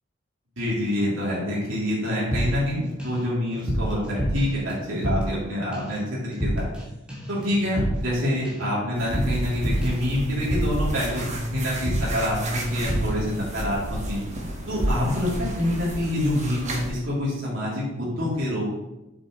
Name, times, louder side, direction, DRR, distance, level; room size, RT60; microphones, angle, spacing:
voice 1, 0.6-6.7 7.3-14.2 14.7-18.8, left 1 dB, 85° right, -8 dB, 3.1 m, -26 dB
sound 1, 2.3-3.2 3.5-5.5 5.7-6.0 6.3-6.8 7.1-10.9 11.2-11.5 11.8-12.3 12.5-13.2, equal, 5° right, 2.5 m, -28 dB
sound 2, 9.0-16.9, right 1 dB, 35° right, 1.6 m, -31 dB
8.4 x 7.6 x 3.1 m, 0.97 s
head